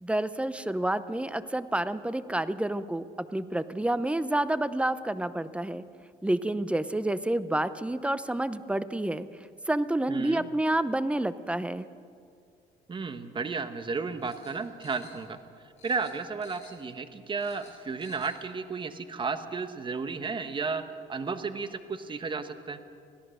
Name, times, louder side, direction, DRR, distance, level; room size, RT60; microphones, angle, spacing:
voice 1, 0.0-5.8 6.2-9.3 9.7-11.9, right 1 dB, 5° right, 14 dB, 0.7 m, -29 dB
voice 2, 10.1-10.5 12.9-15.4 15.8-20.8 21.1-22.8, right 4 dB, 30° right, 9 dB, 1.3 m, -33 dB
sound 1, 14.2-15.5 15.8-16.9 17.2-18.4 18.7-18.8, left 5 dB, 40° left, 7.6 m, -54 dB
24.5 x 17.0 x 6.5 m, 2.4 s
cardioid pair, 110°, 17 cm